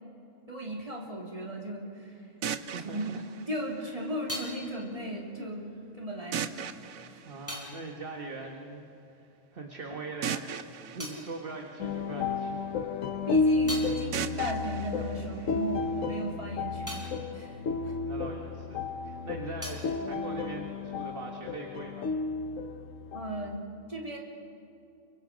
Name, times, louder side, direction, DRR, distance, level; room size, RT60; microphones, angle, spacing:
voice 1, 0.5-2.2 2.9-3.1 3.5-5.7 6.0-6.7 7.1-7.2 11.1-11.2 13.3-16.9 17.3-17.9 23.1-23.6 23.9-24.2, equal, 25° right, -2 dB, 3.5 m, -37 dB
sound 1, 2.4-4.4 6.3-8.3 10.2-12.4 14.1-16.1, right 7 dB, 85° right, 1.3 m, -39 dB
voice 2, 2.7-3.2 3.8-4.0 5.4-5.5 7.2-8.8 9.1-9.3 9.5-10.6 10.9-12.7 17.8-22.1, right 3 dB, 45° right, 2 dB, 1.7 m, -41 dB
sound 2, 3.6-9.5 9.7-12.4 12.8-18.9 19.1-21.2, left 1 dB, 10° left, 4.2 m, -46 dB
sound 3, 11.8-23.6, left 3 dB, 70° left, 1.3 m, -32 dB
29.5 x 23.5 x 5.2 m, 2.8 s
omnidirectional pair, 1.4 m